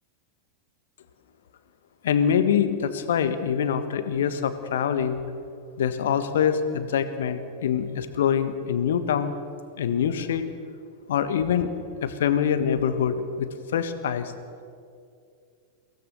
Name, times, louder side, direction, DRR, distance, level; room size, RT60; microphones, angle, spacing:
voice 1, 2.0-5.2 5.8-9.3 9.8-10.5 11.1-11.7 12.0-14.3, left 8 dB, 60° left, 10 dB, 1.4 m, -24 dB
22.5 x 17.0 x 6.7 m, 2.4 s
figure-of-eight pair, 90°, 0 cm